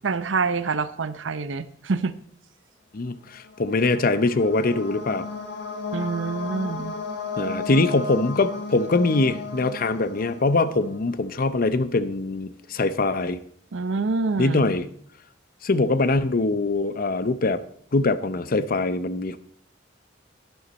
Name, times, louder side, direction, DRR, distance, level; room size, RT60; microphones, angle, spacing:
voice 1, 0.0-2.1 5.9-7.0 13.7-14.7, right 4 dB, 80° right, 14 dB, 0.7 m, -26 dB
voice 2, 2.9-5.3 7.4-13.4 14.4-14.9 15.6-17.6 17.9-19.4, left 3 dB, 50° left, 14 dB, 0.6 m, -23 dB
sound 1, 3.4-11.1, left 3 dB, 65° left, 1.6 m, -34 dB
11.5 x 11.0 x 4.2 m, 0.63 s
head